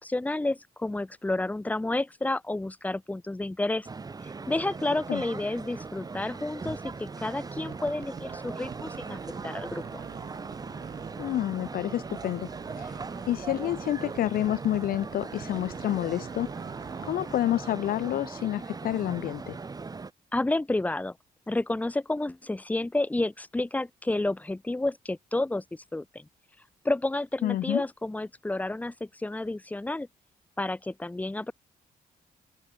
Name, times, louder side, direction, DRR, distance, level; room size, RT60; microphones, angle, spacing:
voice 1, 0.0-3.9 4.5-10.0 20.3-21.2 21.5-26.2 26.8-30.1 30.6-31.5, left 2 dB, 10° left, 0.9 m, -30 dB
sound 1, 3.8-20.1, right 4 dB, 25° right, 0.9 m, -39 dB
sound 2, 7.5-11.7 12.0-17.4, right 12 dB, 85° right, 4.5 m, -46 dB
voice 2, 11.2-12.5 12.8-12.9 13.3-16.5 17.0-19.6 27.4-27.8, left 13 dB, 70° left, 0.5 m, -29 dB
open air
cardioid pair, 100°, 16 cm